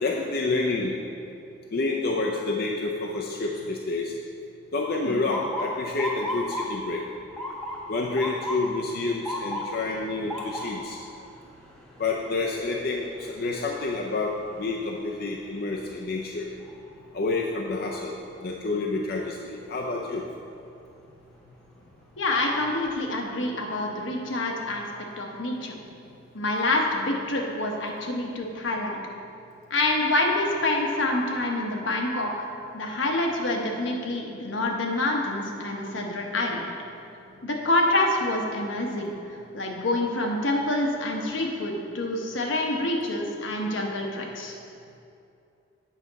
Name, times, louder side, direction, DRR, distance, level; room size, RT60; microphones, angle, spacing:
voice 1, 0.0-1.0 1.7-4.1 4.7-7.0 7.9-11.0 12.0-14.3 14.6-16.5 17.1-18.2 18.4-20.2, left 3 dB, 50° left, -1 dB, 0.5 m, -28 dB
Motor vehicle (road) / Siren, 5.3-17.2 17.6-18.1 18.9-19.2 21.0-21.3 21.8-21.9 22.3-23.0, equal, 5° left, 0.8 m, -37 dB
voice 2, 22.2-24.8 25.2-25.7 26.3-29.0 29.7-32.5 32.7-36.7 37.4-39.1 39.5-44.5, left 2 dB, 80° left, 0 dB, 1.0 m, -27 dB
8.4 x 5.8 x 4.0 m, 2.6 s
head